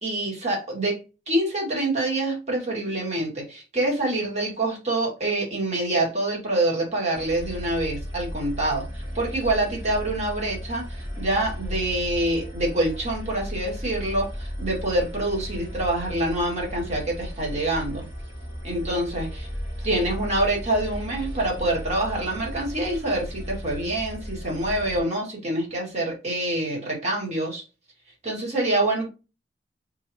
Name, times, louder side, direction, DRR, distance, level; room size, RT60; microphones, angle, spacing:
voice 1, 0.0-18.0 18.6-19.5 19.8-27.6 28.2-29.1, right 1 dB, 40° right, -2 dB, 2.0 m, -26 dB
sound 1, 7.1-25.0, equal, 75° right, 2.2 m, -35 dB
4.5 x 3.9 x 2.9 m, 0.30 s
head